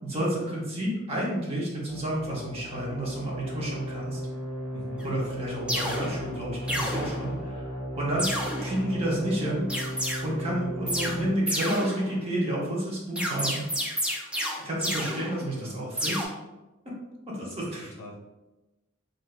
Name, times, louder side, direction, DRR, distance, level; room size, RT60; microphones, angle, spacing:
voice 1, 0.0-4.2 5.0-7.7 7.9-8.3 8.6-9.7 10.2-13.6 14.6-16.3 17.3-17.9, right 1 dB, 30° right, -5 dB, 0.9 m, -30 dB
sound 1, 1.9-11.3, equal, 15° left, 0.8 m, -35 dB
voice 2, 4.7-5.1 15.5-15.8 17.4-17.6 18.0-18.2, left 1 dB, 80° left, 0 dB, 0.5 m, -42 dB
sound 2, 5.0-5.1 5.7-6.3 6.7-7.5 8.2-9.0 9.7-10.2 10.9-11.2 11.5-12.3 13.2-15.7 16.0-16.2, equal, 5° right, 0.3 m, -31 dB
3.4 x 2.6 x 2.4 m, 1.1 s
head